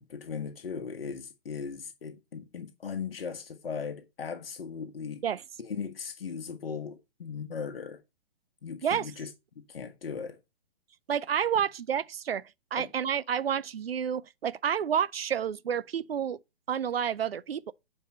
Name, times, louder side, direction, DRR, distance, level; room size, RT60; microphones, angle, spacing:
voice 1, 0.0-5.2 5.6-8.0 8.6-9.3 9.7-10.4 12.8-12.9, left 6 dB, 75° left, 1.4 m, -38 dB
voice 2, 11.1-12.4 12.7-16.4 16.7-17.7, right 8 dB, 90° right, 0.6 m, -29 dB
9.4 x 4.8 x 5.4 m
hypercardioid pair, 135°, 29 cm